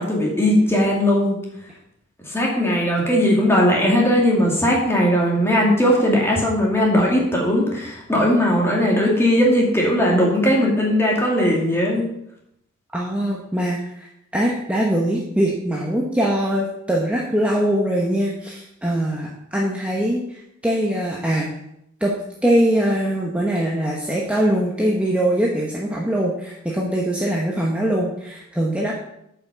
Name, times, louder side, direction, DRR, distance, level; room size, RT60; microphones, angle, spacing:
voice 1, 0.0-1.4 2.3-12.1, equal, 15° left, -3 dB, 2.5 m, -18 dB
voice 2, 12.9-14.1 14.3-21.5 22.0-22.2 22.4-28.9, right 1 dB, 5° right, -3 dB, 1.1 m, -22 dB
8.8 x 5.9 x 6.8 m, 0.79 s
head